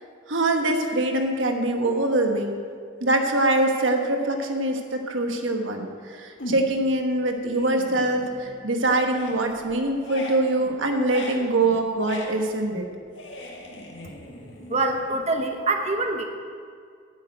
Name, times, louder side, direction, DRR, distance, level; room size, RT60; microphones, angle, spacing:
voice 1, 0.3-2.6 3.0-12.9, right 2 dB, 90° right, 4 dB, 1.3 m, -24 dB
sound 1, 6.4-6.9 7.3-8.7 9.0-15.5, left 1 dB, 75° left, 1.7 m, -40 dB
voice 2, 14.7-16.2, right 2 dB, 35° right, 4 dB, 0.8 m, -25 dB
9.0 x 7.2 x 8.8 m, 2.2 s
head